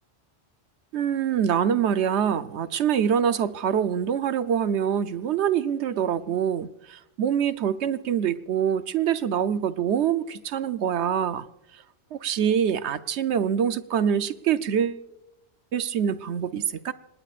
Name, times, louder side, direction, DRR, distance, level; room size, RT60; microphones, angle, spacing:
voice 1, 0.9-11.5 12.1-15.0 15.7-16.9, right 8 dB, 80° right, 1.0 m, -25 dB
27.0 x 20.0 x 2.5 m
omnidirectional pair, 1.1 m